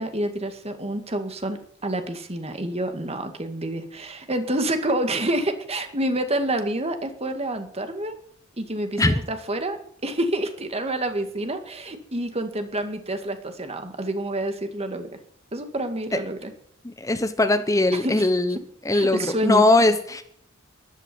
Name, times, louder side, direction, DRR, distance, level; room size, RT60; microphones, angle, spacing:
voice 1, 0.0-8.1 8.6-15.1 15.5-16.5 17.9-18.3 18.9-19.6, right 1 dB, 30° right, 7 dB, 2.1 m, -28 dB
voice 2, 16.8-18.6 18.8-20.2, left 2 dB, 15° left, 9 dB, 1.0 m, -20 dB
12.5 x 11.5 x 9.6 m, 0.66 s
head